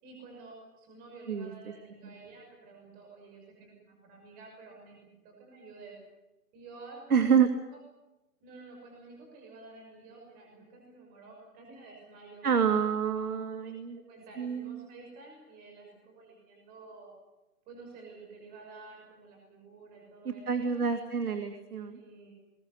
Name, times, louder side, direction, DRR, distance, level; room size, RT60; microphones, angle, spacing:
voice 1, 0.0-5.9 6.5-7.3 7.7-7.8 8.4-12.8 13.5-17.1 17.7-20.7 21.9-22.3, right 3 dB, 20° right, 1 dB, 6.1 m, -51 dB
voice 2, 7.1-7.5 12.4-14.0 14.4-14.8 20.2-22.0, right 7 dB, 70° right, 7 dB, 2.5 m, -27 dB
21.5 x 18.5 x 9.5 m, 0.97 s
hypercardioid pair, 160°, 46 cm